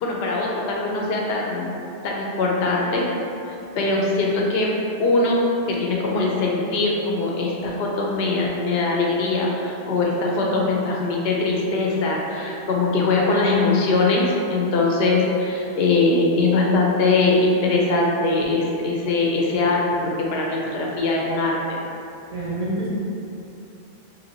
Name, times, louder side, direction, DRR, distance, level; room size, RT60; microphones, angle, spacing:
voice 1, 0.0-1.8 2.0-3.1 3.8-21.8, left 3 dB, 75° left, -2 dB, 0.8 m, -21 dB
voice 2, 10.3-10.7 22.3-22.9, right 1 dB, 55° right, -6 dB, 0.4 m, -29 dB
3.1 x 2.6 x 2.8 m, 2.7 s
omnidirectional pair, 1.0 m